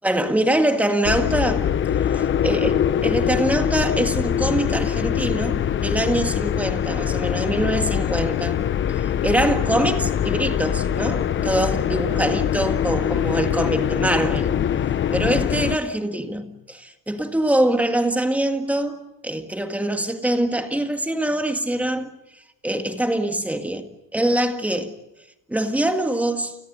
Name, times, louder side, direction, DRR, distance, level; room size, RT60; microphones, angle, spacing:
voice 1, 0.0-8.6 8.9-14.5 15.1-22.1 22.6-25.0 25.5-26.6, right 1 dB, 5° right, 1.9 m, -24 dB
sound 1, 1.0-15.8, left 9 dB, 35° left, 0.9 m, -23 dB
30.0 x 29.5 x 5.5 m
cardioid pair, 175°, 33 cm